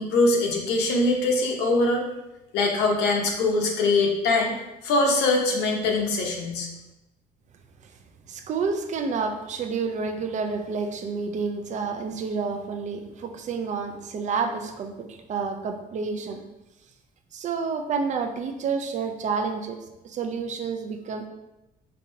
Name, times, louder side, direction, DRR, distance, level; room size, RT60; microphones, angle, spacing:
voice 1, 0.0-2.0 2.5-4.6 4.8-6.7, left 2 dB, 85° left, 1 dB, 0.8 m, -22 dB
voice 2, 8.3-16.4 17.3-19.8 20.0-21.3, right 5 dB, 45° right, 5 dB, 0.5 m, -29 dB
5.2 x 2.7 x 2.7 m, 0.96 s
cardioid pair, 110°, 17 cm